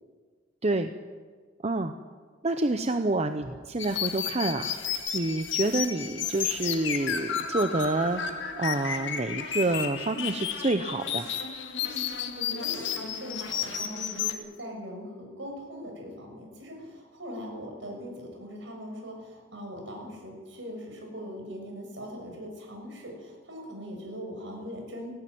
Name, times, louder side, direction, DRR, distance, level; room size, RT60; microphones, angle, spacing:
voice 1, 0.6-0.9 1.6-1.9 2.4-4.8 5.1-11.3, right 2 dB, 35° right, 8 dB, 0.8 m, -28 dB
sound 1, 3.8-14.3, left 7 dB, 65° left, 2.0 m, -32 dB
voice 2, 11.8-25.1, equal, 65° right, 2 dB, 6.4 m, -41 dB
18.5 x 17.0 x 9.4 m, 1.5 s
head